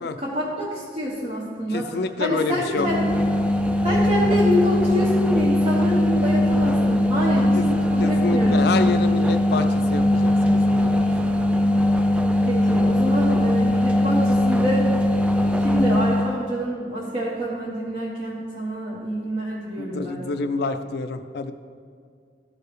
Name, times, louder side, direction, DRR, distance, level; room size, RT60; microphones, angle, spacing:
voice 1, 0.2-3.2 3.8-8.6 12.4-14.9 15.6-20.2, equal, 35° right, -6 dB, 0.9 m, -27 dB
voice 2, 1.7-2.9 7.5-7.6 8.0-9.7 9.9-10.4 10.7-11.0 13.7-13.8 19.8-21.5, left 4 dB, 60° left, 9 dB, 0.4 m, -27 dB
sound 1, 2.7-16.3, left 1 dB, 5° right, 0.3 m, -20 dB
12.5 x 4.6 x 3.3 m, 2.2 s
head